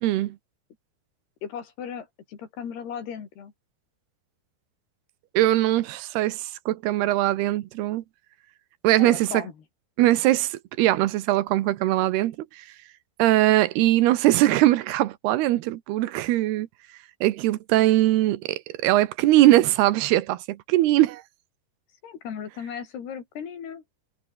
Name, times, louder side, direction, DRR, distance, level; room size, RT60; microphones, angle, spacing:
voice 1, 0.0-0.4 5.3-8.0 8.8-9.4 10.0-12.6 13.2-16.7 17.2-21.2, right 15 dB, 80° right, 3.0 m, -21 dB
voice 2, 1.4-3.5 9.0-9.5 22.0-23.8, left 7 dB, 75° left, 5.5 m, -36 dB
omnidirectional pair, 4.7 m